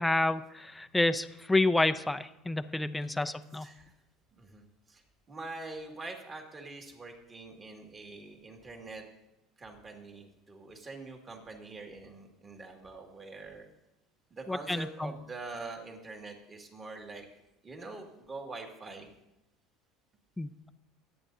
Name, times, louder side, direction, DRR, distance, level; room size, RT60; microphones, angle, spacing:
voice 1, 0.0-3.7 14.5-15.1 20.4-20.7, left 2 dB, 10° left, 10 dB, 0.5 m, -29 dB
voice 2, 3.6-3.9 4.4-4.6 4.9-5.0 5.3-9.0 9.6-13.7 14.3-17.3 17.6-19.1, right 3 dB, 30° right, 2 dB, 2.1 m, -44 dB
23.0 x 8.8 x 2.7 m, 0.91 s
supercardioid pair, 105°, 0 cm